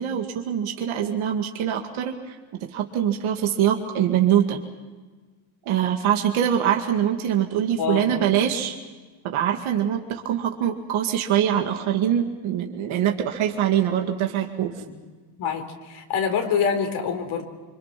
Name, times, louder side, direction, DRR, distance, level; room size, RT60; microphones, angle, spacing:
voice 1, 0.0-2.4 2.7-4.6 5.7-8.8 9.2-14.7, right 10 dB, 75° right, 2 dB, 2.3 m, -23 dB
voice 2, 7.8-8.3 14.8-14.9 15.4-17.4, left 6 dB, 75° left, 4 dB, 4.2 m, -26 dB
26.0 x 25.5 x 6.0 m, 1.4 s
cardioid pair, 140°, 49 cm